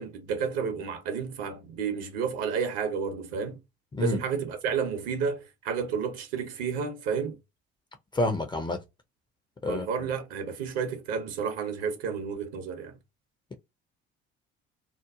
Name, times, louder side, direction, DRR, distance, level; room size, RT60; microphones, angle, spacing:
voice 1, 0.0-3.6 4.0-7.4 9.7-13.0, right 6 dB, 55° right, 0.8 m, -31 dB
voice 2, 8.1-8.8 9.6-9.9, left 2 dB, 15° left, 0.5 m, -28 dB
3.0 x 2.0 x 2.3 m
figure-of-eight pair, 55°, 30 cm